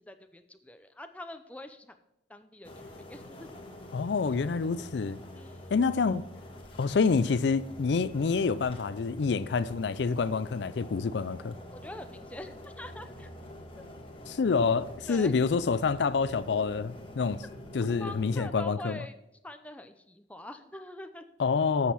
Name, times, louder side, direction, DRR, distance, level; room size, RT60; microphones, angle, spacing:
voice 1, 0.0-2.0 2.3-3.6 5.4-5.7 11.7-13.3 13.8-13.9 15.1-15.3 17.9-19.1 19.4-21.2, left 1 dB, 10° left, 0.6 m, -44 dB
sound 1, 2.6-18.5, left 1 dB, 30° left, 1.5 m, -46 dB
voice 2, 3.9-5.2 5.7-6.3 6.8-11.6 14.3-17.4 17.7-19.0 21.4-21.9, left 5 dB, 70° left, 0.4 m, -27 dB
8.2 x 6.5 x 5.6 m
head